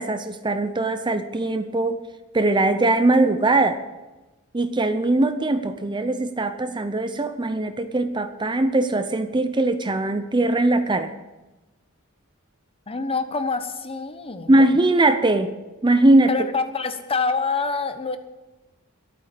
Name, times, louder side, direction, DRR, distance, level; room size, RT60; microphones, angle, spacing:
voice 1, 0.0-2.0 2.3-3.8 4.5-11.1 14.5-15.5 15.8-16.3, right 2 dB, 20° right, 10 dB, 0.6 m, -20 dB
voice 2, 12.9-14.5 16.3-18.2, left 4 dB, 25° left, 9 dB, 1.0 m, -26 dB
11.5 x 8.9 x 8.4 m, 1.1 s
head